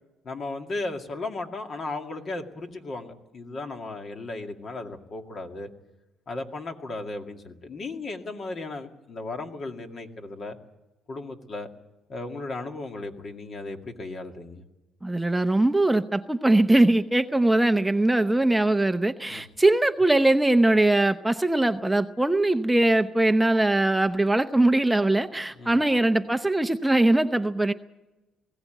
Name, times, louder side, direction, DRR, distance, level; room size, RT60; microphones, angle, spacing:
voice 1, 0.2-5.7 6.3-10.6 11.1-11.7 12.1-14.6 19.3-19.4 25.5-25.9, left 2 dB, 45° left, 4 dB, 2.2 m, -35 dB
voice 2, 15.0-27.7, right 2 dB, 10° right, 8 dB, 0.7 m, -21 dB
20.0 x 16.5 x 9.1 m, 1.0 s
cardioid pair, 105°, 0 cm